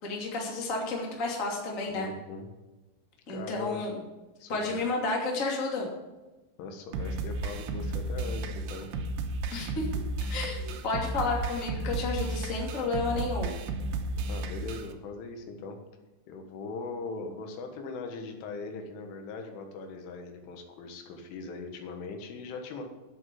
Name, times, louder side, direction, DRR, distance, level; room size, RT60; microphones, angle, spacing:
voice 1, 0.0-2.1 3.3-3.9 4.5-5.9 9.5-9.9 10.2-13.5, left 3 dB, 25° left, -1 dB, 1.8 m, -31 dB
voice 2, 1.9-2.5 3.3-3.8 4.4-4.8 6.6-8.9 14.3-15.8 16.3-22.8, left 4 dB, 80° left, 4 dB, 3.9 m, -40 dB
sound 1, 6.9-14.9, right 2 dB, 75° right, 2.8 m, -33 dB
11.0 x 8.0 x 7.7 m, 1.1 s
omnidirectional pair, 5.6 m